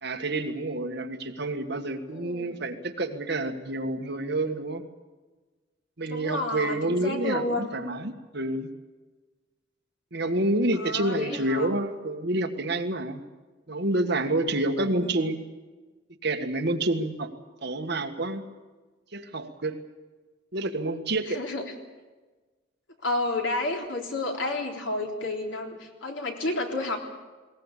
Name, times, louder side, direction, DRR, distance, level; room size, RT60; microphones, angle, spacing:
voice 1, 0.0-4.8 6.0-8.7 10.1-13.2 13.7-15.4 16.2-17.3 17.6-18.4 19.1-19.8 20.5-21.4, right 2 dB, 60° right, 5 dB, 1.8 m, -28 dB
voice 2, 2.1-2.5 6.1-7.7 10.7-11.7 14.8-15.2 21.3-21.6 23.0-27.0, left 2 dB, 75° left, 2 dB, 3.7 m, -31 dB
20.5 x 18.5 x 8.4 m, 1.3 s
head